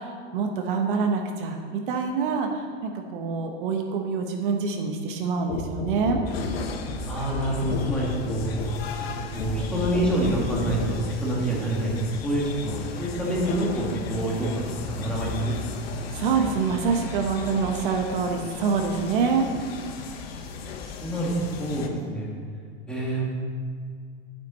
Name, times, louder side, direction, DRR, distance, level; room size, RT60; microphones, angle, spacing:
voice 1, 0.0-6.2 16.1-19.5, right 5 dB, 55° right, 3 dB, 1.1 m, -26 dB
sound 1, 5.5-11.1 11.9-12.1, left 3 dB, 20° left, 0.4 m, -32 dB
sound 2, 6.3-21.9, left 5 dB, 70° left, 1.3 m, -36 dB
voice 2, 7.0-8.5 9.0-11.9 12.2-15.5 21.0-21.3 21.6-22.3 22.9-23.2, right 1 dB, 5° left, -5 dB, 1.7 m, -27 dB
11.5 x 9.3 x 4.2 m, 2.2 s
supercardioid pair, 175°, 31 cm